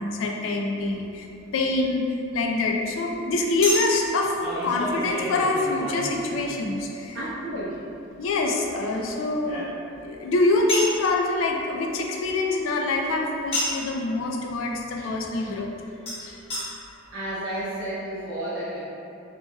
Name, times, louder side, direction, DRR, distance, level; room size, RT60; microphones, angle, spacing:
voice 1, 0.0-4.3 4.6-7.2 7.5-7.6 8.2-9.7 10.0-15.7 16.2-16.4, left 2 dB, 85° left, 1 dB, 0.4 m, -25 dB
Chink clink, 0.8-0.9 3.6-6.8 8.4-10.0 10.7-11.0 13.5-13.9 16.1-16.2 16.5-16.6 17.3-17.4 17.5-17.6, equal, 30° left, 1.0 m, -31 dB
voice 2, 7.1-7.9 17.1-18.8, right 1 dB, 90° right, -8 dB, 0.5 m, -32 dB
2.9 x 2.2 x 3.1 m, 2.7 s
head